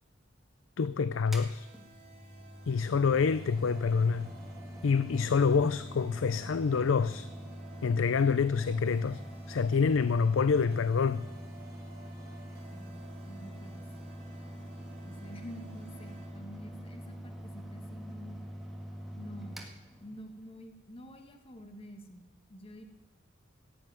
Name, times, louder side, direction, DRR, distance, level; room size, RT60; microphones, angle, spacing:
voice 1, 0.8-1.7 2.7-4.3 4.8-7.3 7.8-9.2 9.5-11.2, left 5 dB, 75° left, 0.5 m, -27 dB
Mechanical fan, 1.2-20.6, equal, ahead, 1.9 m, -44 dB
sound 1, 1.5-16.3, right 2 dB, 50° right, 3.6 m, -57 dB
voice 2, 12.7-13.9 15.0-18.4 19.1-19.6 20.0-22.9, equal, 30° left, 1.5 m, -48 dB
16.5 x 8.6 x 9.2 m
head